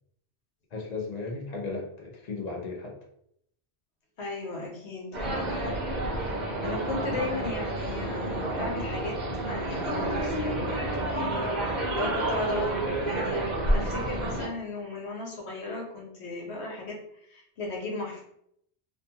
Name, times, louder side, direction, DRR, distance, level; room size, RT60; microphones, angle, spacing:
voice 1, 0.7-3.0, left 3 dB, 50° left, 0 dB, 0.6 m, -35 dB
voice 2, 4.2-5.7 6.1-9.2 9.4-17.0 17.3-18.2, left 2 dB, 80° left, -1 dB, 1.1 m, -36 dB
sound 1, 5.1-14.5, right 1 dB, 50° right, 0.7 m, -29 dB
2.5 x 2.3 x 2.7 m, 0.72 s
omnidirectional pair, 1.1 m